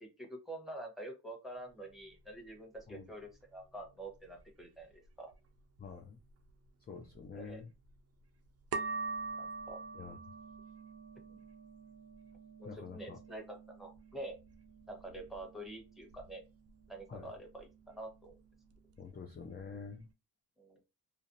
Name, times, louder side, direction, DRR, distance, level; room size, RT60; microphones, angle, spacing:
voice 1, 0.0-5.3 7.3-7.6 9.4-9.8 11.3-11.4 12.6-14.4 14.9-16.4 16.9-18.4 20.6-20.8, right 1 dB, ahead, 1.0 m, -47 dB
sound 1, 1.5-20.1, right 4 dB, 35° right, 0.4 m, -47 dB
voice 2, 5.8-6.2 6.9-7.7 9.9-10.2 12.6-13.2 17.1-17.3 19.0-20.1, left 5 dB, 25° left, 0.4 m, -47 dB
2.5 x 2.0 x 2.6 m
supercardioid pair, 45°, 44 cm